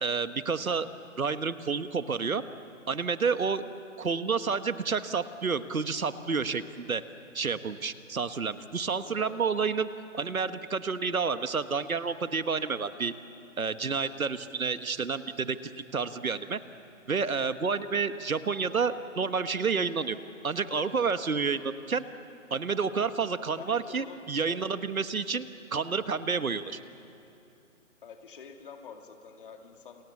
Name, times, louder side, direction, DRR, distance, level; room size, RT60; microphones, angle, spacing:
voice 1, 0.0-0.9 1.2-2.4 2.9-3.6 4.0-7.0 7.3-9.9 10.1-13.1 13.6-15.6 15.9-16.6 17.1-20.2 20.4-22.0 22.5-25.5 25.7-26.8, right 5 dB, 90° right, 11 dB, 1.5 m, -29 dB
voice 2, 8.9-9.4 17.7-18.0 23.6-24.8 28.0-30.0, left 6 dB, 40° left, 4 dB, 2.4 m, -47 dB
29.5 x 27.5 x 7.3 m, 2.7 s
hypercardioid pair, 160°, 41 cm